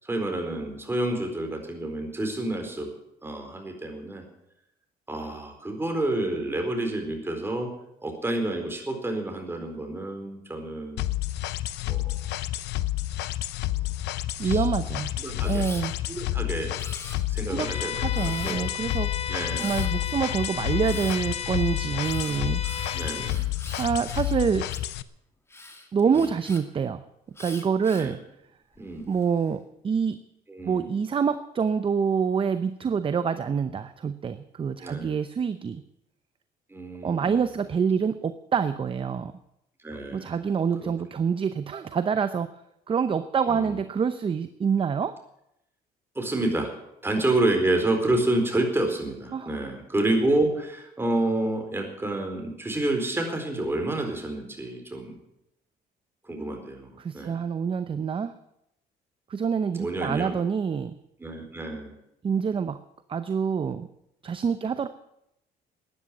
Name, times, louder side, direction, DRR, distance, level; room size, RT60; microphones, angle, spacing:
voice 1, 0.0-2.9 3.2-4.2 5.1-7.7 8.0-11.0 11.9-12.2 14.4-14.7 15.2-15.7 16.1-16.7 17.3-17.9 18.4-18.7 19.3-19.7 20.9-21.0 22.9-23.4 26.0-26.3 27.9-28.2 28.8-29.1 30.5-30.9 34.8-35.1 36.7-37.5 39.8-40.4 40.8-40.9 43.4-43.8 46.1-46.7 47.0-55.2 56.2-57.4 59.7-60.3 61.2-61.9 64.6-64.7, right 2 dB, 15° right, 3 dB, 4.3 m, -29 dB
sound 1, 11.0-25.0, left 15 dB, 85° left, 0.7 m, -30 dB
voice 2, 14.4-15.1 15.4-15.9 17.5-17.7 17.9-19.1 19.6-24.7 25.9-27.0 27.4-28.2 29.1-30.2 30.6-35.8 37.0-39.3 40.1-42.5 42.9-45.2 49.3-49.6 57.0-58.3 59.3-60.9 62.2-62.8 63.1-63.9 64.2-64.9, right 6 dB, 30° right, 11 dB, 0.8 m, -26 dB
Camera, 15.4-15.9 16.7-17.5 18.1-18.7 19.5-19.9 20.8-21.2 22.0-24.9 25.5-26.6 27.4-28.1 28.8-29.3, left 2 dB, 15° left, 2.5 m, -43 dB
Bowed string instrument, 17.6-23.4, left 7 dB, 35° left, 0.9 m, -34 dB
13.5 x 10.0 x 9.5 m, 0.81 s
cardioid pair, 110°, 17 cm